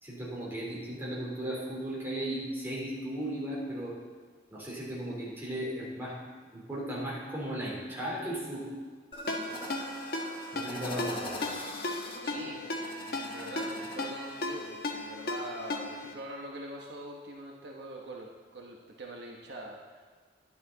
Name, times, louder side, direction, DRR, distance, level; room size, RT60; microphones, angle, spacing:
voice 1, 0.0-3.9 4.5-6.1 6.5-8.6 10.5-11.6, right 1 dB, 15° right, -7 dB, 3.7 m, -36 dB
sound 1, 9.1-14.7, left 1 dB, 30° left, 1.4 m, -42 dB
Ringtone, 9.3-16.1, left 2 dB, 60° left, 1.3 m, -36 dB
voice 2, 12.2-12.6 13.0-20.0, right 1 dB, 70° right, -1 dB, 1.2 m, -43 dB
11.0 x 11.0 x 4.0 m, 1.5 s
head